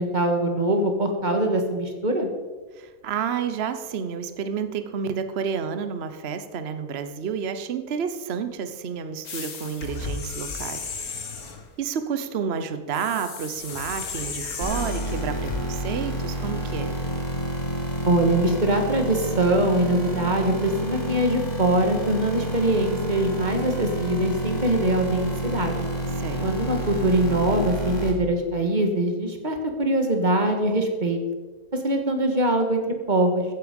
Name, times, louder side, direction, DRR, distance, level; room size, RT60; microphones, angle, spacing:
voice 1, 0.0-2.3 18.1-25.8 26.4-31.2 31.8-33.4, right 1 dB, 30° right, 4 dB, 1.8 m, -23 dB
voice 2, 2.8-11.2 11.8-17.0 26.2-26.5, right 7 dB, 50° right, 9 dB, 1.1 m, -30 dB
sound 1, 9.2-11.7 12.9-15.6, left 4 dB, 80° left, 2.0 m, -34 dB
sound 2, 14.6-28.1, equal, 30° left, 2.7 m, -29 dB
15.0 x 9.8 x 5.3 m, 1.4 s
omnidirectional pair, 1.5 m